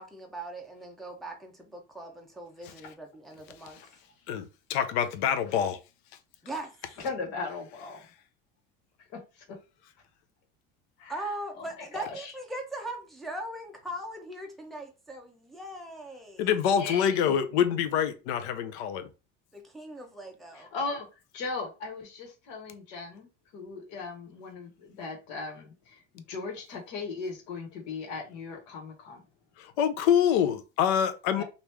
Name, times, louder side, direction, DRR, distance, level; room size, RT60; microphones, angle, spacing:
voice 1, 0.0-3.8 6.4-7.0 11.1-16.5 19.5-20.7, right 1 dB, ahead, 0.6 m, -40 dB
voice 2, 4.3-5.8 16.4-19.1 29.6-31.4, left 8 dB, 80° left, 0.7 m, -26 dB
voice 3, 7.0-8.1 11.0-11.2 11.5-11.6 11.9-12.3 16.8-17.2 20.5-21.1 21.3-23.3 23.5-29.2 31.4-31.5, left 4 dB, 65° left, 1.4 m, -37 dB
3.0 x 2.6 x 3.4 m
cardioid pair, 140°, 32 cm